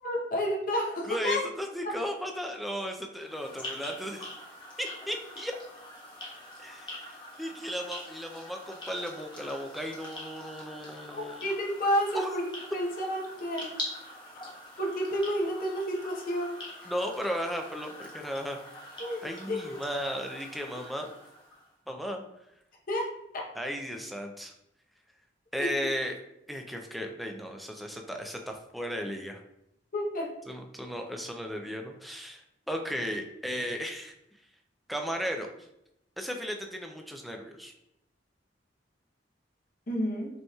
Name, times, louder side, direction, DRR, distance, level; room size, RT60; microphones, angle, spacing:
voice 1, 0.0-1.4 11.1-12.4 12.7-13.7 14.8-16.9 19.0-19.7 22.9-23.1 23.3-23.4 25.6-25.7 29.9-30.3 39.9-40.3, equal, 50° left, -1 dB, 0.8 m, -30 dB
voice 2, 1.0-4.3 4.8-5.5 6.6-11.4 12.1-12.3 16.8-18.6 19.2-21.1 21.9-22.2 23.5-24.5 25.5-26.2 26.5-29.4 30.5-34.1 34.9-35.5 36.2-37.7, equal, ahead, 3 dB, 0.4 m, -35 dB
sound 1, 3.2-21.7, left 1 dB, 25° left, 1.1 m, -44 dB
5.3 x 2.9 x 2.3 m, 0.82 s
head